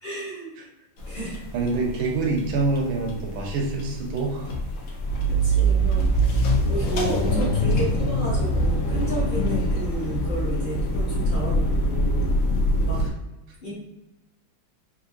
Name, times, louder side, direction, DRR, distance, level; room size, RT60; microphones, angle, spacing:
voice 1, 0.0-0.6 1.1-1.4 5.3-6.0 6.6-12.3 12.8-13.0 13.6-13.8, right 1 dB, 35° left, -7 dB, 0.8 m, -32 dB
sound 1, 1.0-13.1, right 1 dB, 80° left, 0.7 m, -24 dB
voice 2, 1.5-4.5, right 3 dB, 80° right, 1 dB, 1.4 m, -26 dB
3.6 x 2.6 x 2.7 m, 0.99 s
omnidirectional pair, 2.2 m